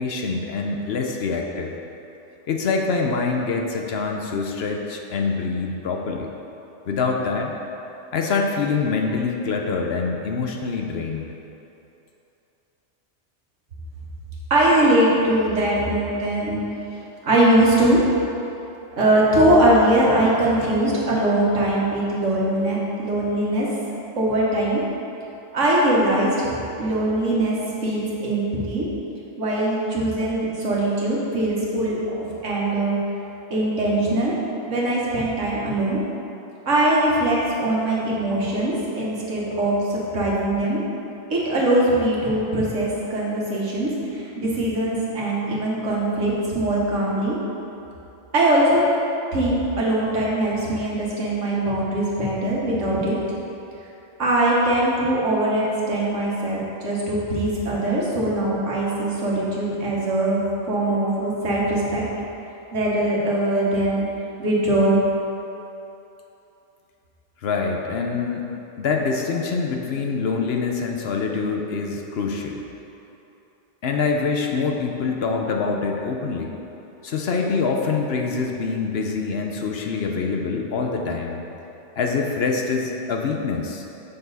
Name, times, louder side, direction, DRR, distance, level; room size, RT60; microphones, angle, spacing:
voice 1, 0.0-1.7 2.5-6.3 6.9-7.5 8.1-11.3 67.4-68.5 68.8-72.6 73.8-76.5 77.0-81.4 82.0-83.8, left 4 dB, 65° left, 1 dB, 0.9 m, -25 dB
voice 2, 14.5-16.6 17.2-18.1 19.0-23.7 24.2-24.8 25.5-27.6 27.8-28.9 29.4-32.0 32.4-33.0 33.5-34.3 34.7-36.0 36.7-40.8 41.3-47.4 48.3-48.8 49.3-53.2 54.2-60.4 60.7-62.0 62.7-64.1 64.4-65.0, right 1 dB, 85° right, -5 dB, 1.7 m, -21 dB
6.9 x 6.8 x 4.1 m, 2.9 s
omnidirectional pair, 1.2 m